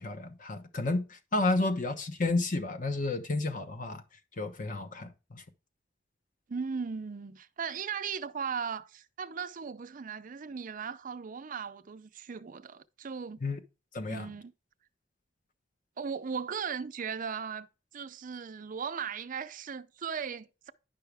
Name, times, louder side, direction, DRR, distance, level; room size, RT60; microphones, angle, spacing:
voice 1, 0.0-4.0 4.4-5.4 13.4-13.6 13.9-14.3, left 2 dB, 45° left, 1.0 m, -31 dB
voice 2, 6.5-13.4 14.1-14.5 16.0-17.7 17.9-20.7, right 6 dB, 45° right, 0.5 m, -37 dB
10.0 x 5.6 x 3.4 m
head